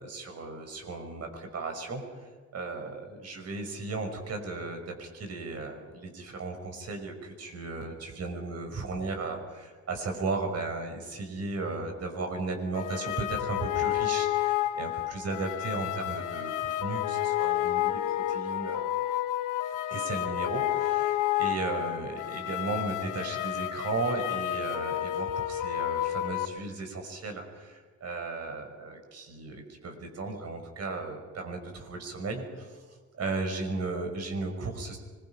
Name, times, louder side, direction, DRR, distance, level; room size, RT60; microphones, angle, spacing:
voice 1, 0.0-18.8 19.9-35.0, right 3 dB, 55° right, 5 dB, 5.7 m, -35 dB
sound 1, 12.7-26.4, left 14 dB, 85° left, 1.5 m, -30 dB
25.0 x 23.0 x 5.8 m, 1.5 s
cardioid pair, 90°, 30 cm